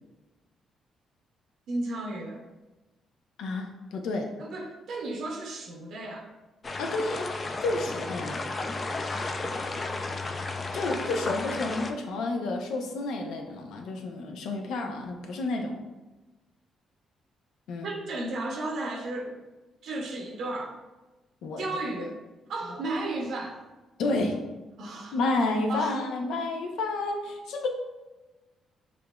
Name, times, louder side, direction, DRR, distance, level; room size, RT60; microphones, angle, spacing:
voice 1, 1.7-2.4 4.4-6.3 17.8-19.4 19.8-20.8 21.6-22.2 22.5-23.6 24.8-25.2 25.7-26.0, right 2 dB, 70° right, 1 dB, 0.6 m, -34 dB
voice 2, 3.4-4.3 6.8-7.3 7.6-8.4 10.7-15.8 17.7-17.9 21.4-21.6 24.0-24.4 25.1-27.7, left 2 dB, 80° left, 3 dB, 0.6 m, -30 dB
sound 1, 6.6-11.9, left 3 dB, 35° left, 0.4 m, -33 dB
6.7 x 2.5 x 2.3 m, 1.1 s
cardioid pair, 90°, 0 cm